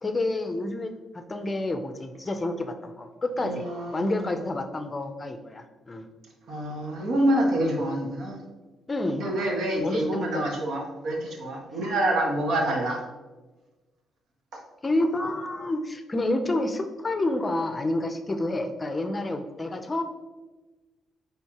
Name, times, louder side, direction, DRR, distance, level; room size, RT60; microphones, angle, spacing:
voice 1, 0.0-3.6 3.9-6.1 7.6-7.8 8.9-9.3 9.8-10.5 14.8-20.0, left 2 dB, 25° left, 7 dB, 0.5 m, -29 dB
voice 2, 3.4-4.4 6.5-8.4 9.2-13.0, right 1 dB, 70° right, 0 dB, 1.4 m, -27 dB
9.1 x 3.5 x 2.9 m, 1.2 s
cardioid pair, 90°, 0 cm